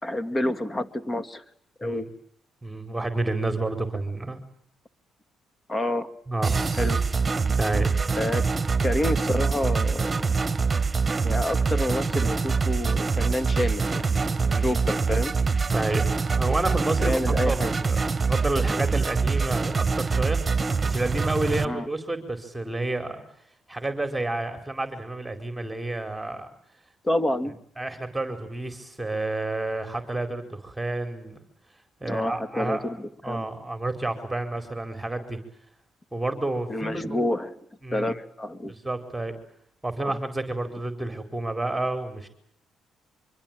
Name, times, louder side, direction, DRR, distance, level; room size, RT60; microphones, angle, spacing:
voice 1, 0.0-1.4 1.8-2.1 5.7-6.1 6.8-7.0 8.2-8.4 8.8-10.4 11.2-15.3 17.0-17.7 21.6-21.9 27.0-27.6 32.0-33.5 36.7-37.6 37.9-38.7 40.0-40.1, left 1 dB, 25° left, 12 dB, 2.3 m, -28 dB
voice 2, 2.6-4.4 6.3-6.6 7.6-7.9 14.4-14.7 15.7-16.0 16.4-20.4 20.8-23.2 23.7-26.5 27.8-31.4 32.0-32.9 33.2-35.4 36.1-37.2 37.8-38.1 38.7-39.4 39.8-42.3, right 2 dB, 10° right, 7 dB, 4.5 m, -30 dB
sound 1, 6.4-21.7, right 4 dB, 30° right, 1.7 m, -24 dB
25.0 x 24.0 x 9.1 m, 0.67 s
supercardioid pair, 60°, 0 cm